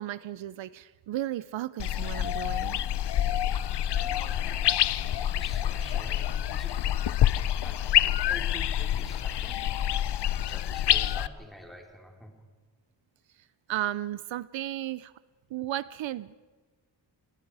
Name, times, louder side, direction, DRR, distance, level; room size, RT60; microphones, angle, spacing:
voice 1, 0.0-2.8 13.7-15.1 15.5-16.4, right 13 dB, 80° right, 18 dB, 0.6 m, -34 dB
sound 1, 1.8-11.3, left 11 dB, 65° left, 0.7 m, -27 dB
voice 2, 3.5-7.1 7.6-9.7 10.4-12.3, equal, ahead, 1 dB, 3.8 m, -48 dB
30.0 x 20.0 x 4.8 m, 1.4 s
wide cardioid pair, 110°, 45 cm